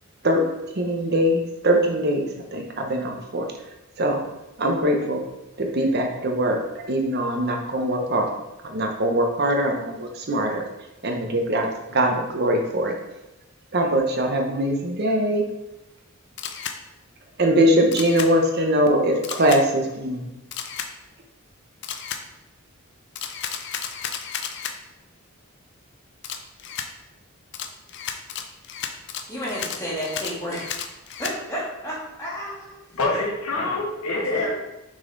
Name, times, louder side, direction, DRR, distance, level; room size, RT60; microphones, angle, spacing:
voice 1, 0.7-3.5 4.0-4.2 4.6-5.2 5.6-6.6 6.9-8.3 8.6-10.6 11.0-12.9 13.7-15.4 17.4-20.3, right 1 dB, 50° right, 0.9 m, -22 dB
Camera, 16.4-16.8 17.9-18.3 19.2-19.6 20.5-20.9 21.8-22.2 23.2-24.8 26.2-26.9 27.5-31.4, left 8 dB, 55° left, 0.5 m, -33 dB
voice 2, 29.3-30.9 31.2-32.8 34.2-34.5, equal, 15° left, 1.7 m, -31 dB
voice 3, 32.9-34.5, left 2 dB, 80° left, 1.2 m, -25 dB
6.1 x 4.0 x 3.9 m
head